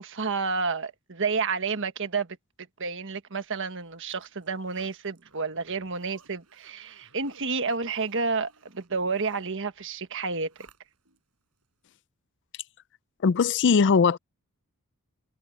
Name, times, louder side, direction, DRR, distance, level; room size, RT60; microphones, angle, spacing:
voice 1, 0.0-2.3 2.8-10.5, right 4 dB, 60° right, 1.5 m, -30 dB
Zipper (clothing), 3.6-11.2 11.6-11.7, right 4 dB, 90° right, 6.6 m, -60 dB
voice 2, 13.2-14.2, left 5 dB, 55° left, 0.4 m, -20 dB
head